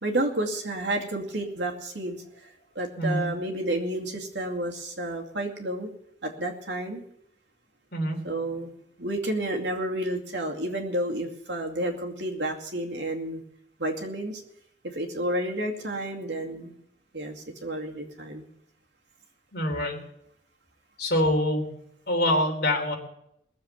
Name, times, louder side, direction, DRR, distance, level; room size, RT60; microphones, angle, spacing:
voice 1, 0.0-5.9 6.2-7.0 8.2-8.7 9.0-13.4 13.8-14.4 14.8-16.7 17.1-18.4, right 1 dB, 80° right, 2 dB, 2.4 m, -31 dB
voice 2, 3.0-3.3 7.9-8.2 19.5-20.0 21.0-21.7 22.1-23.0, left 1 dB, 60° left, 1 dB, 3.4 m, -25 dB
20.0 x 7.4 x 7.2 m, 0.76 s
head